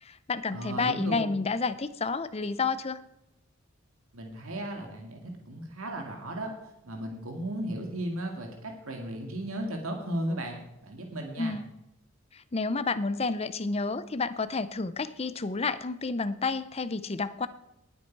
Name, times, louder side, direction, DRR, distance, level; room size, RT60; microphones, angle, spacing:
voice 1, 0.0-3.0 11.4-11.7 12.3-17.5, left 4 dB, 30° left, 14 dB, 0.6 m, -30 dB
voice 2, 0.5-1.3 4.1-5.2 5.5-6.5 6.8-10.6 10.8-11.5, right 1 dB, 85° right, 3 dB, 2.1 m, -35 dB
19.5 x 8.3 x 4.6 m, 0.86 s
head